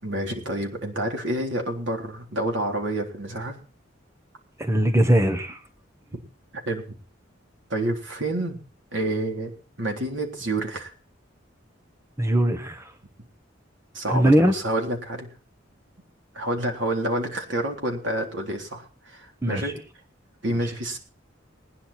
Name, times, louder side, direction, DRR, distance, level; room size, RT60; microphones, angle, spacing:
voice 1, 0.0-3.6 6.7-6.8 7.7-8.6 8.9-9.5 9.8-10.9 13.9-15.3 16.3-19.8 20.4-21.0, right 1 dB, 70° right, 2 dB, 3.7 m, -28 dB
voice 2, 4.6-5.6 12.2-12.9 14.1-14.5 19.4-19.7 20.5-20.7, right 1 dB, 15° right, 7 dB, 1.1 m, -21 dB
20.0 x 10.0 x 4.3 m, 0.37 s
head